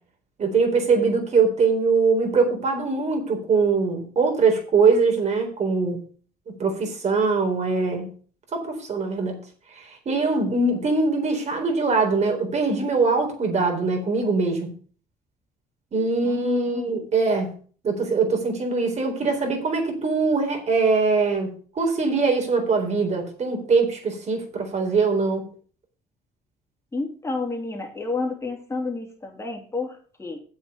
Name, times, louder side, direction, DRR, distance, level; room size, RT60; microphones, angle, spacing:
voice 1, 0.4-6.0 6.6-8.1 8.5-9.4 9.7-14.7 15.9-17.5 17.8-25.5, right 4 dB, 40° right, 3 dB, 4.0 m, -22 dB
voice 2, 16.2-17.1 26.9-30.4, left 3 dB, 15° left, 0 dB, 3.1 m, -30 dB
8.2 x 7.2 x 6.8 m, 0.42 s
cardioid pair, 110°, 17 cm